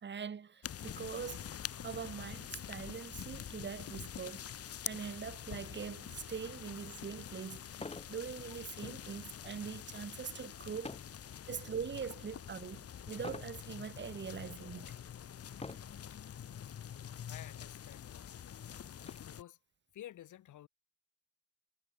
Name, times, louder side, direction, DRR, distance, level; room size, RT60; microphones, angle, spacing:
voice 1, 0.0-4.5 4.9-7.8 8.1-11.0 11.5-14.9, right 6 dB, 35° right, 1.8 m, -43 dB
sound 1, 0.6-19.4, left 9 dB, 50° left, 1.4 m, -46 dB
sound 2, 7.8-8.2 8.6-8.9 10.8-11.2 11.8-12.2 13.2-13.6 14.3-14.4 15.5-16.0 17.0-17.2 17.5-17.6 18.0-19.2, left 3 dB, 20° left, 6.9 m, -46 dB
voice 2, 17.3-18.6 19.2-19.6 19.9-20.7, left 12 dB, 75° left, 6.5 m, -52 dB
cardioid pair, 90°, 30 cm